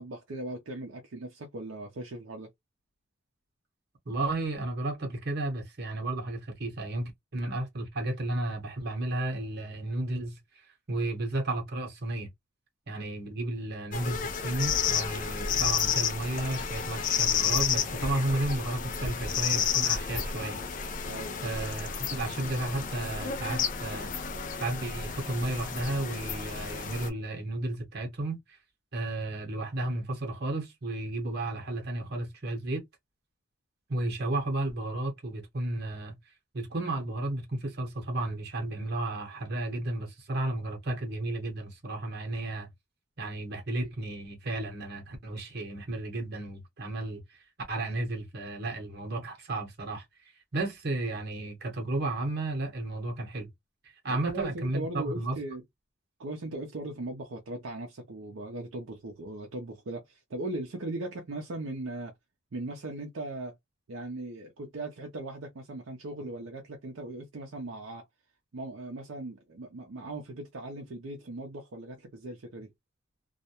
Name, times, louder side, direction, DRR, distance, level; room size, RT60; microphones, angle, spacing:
voice 1, 0.0-2.5 21.1-21.4 54.1-55.6 56.2-62.1 62.5-63.5 63.9-68.0 68.5-72.7, right 2 dB, 70° right, 0.5 m, -38 dB
voice 2, 4.1-10.4 10.9-12.3 12.9-20.6 21.4-24.1 24.6-28.6 28.9-32.8 33.9-36.2 36.5-42.7 43.2-47.2 47.7-50.0 50.5-53.5 54.0-55.4, right 2 dB, 50° right, 0.9 m, -33 dB
sound 1, 13.9-27.1, left 7 dB, 40° left, 0.4 m, -31 dB
2.3 x 2.1 x 2.7 m
head